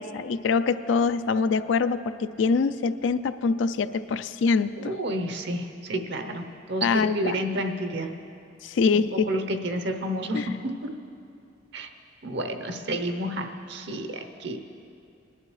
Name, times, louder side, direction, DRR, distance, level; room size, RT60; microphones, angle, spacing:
voice 1, 0.0-4.9 6.8-7.4 8.6-9.4 10.3-10.5, left 4 dB, 70° left, 12 dB, 0.4 m, -24 dB
voice 2, 4.8-8.1 8.9-10.9 11.7-11.9 12.2-14.6, right 1 dB, 65° right, 6 dB, 0.8 m, -30 dB
20.0 x 11.0 x 3.2 m, 2.5 s
head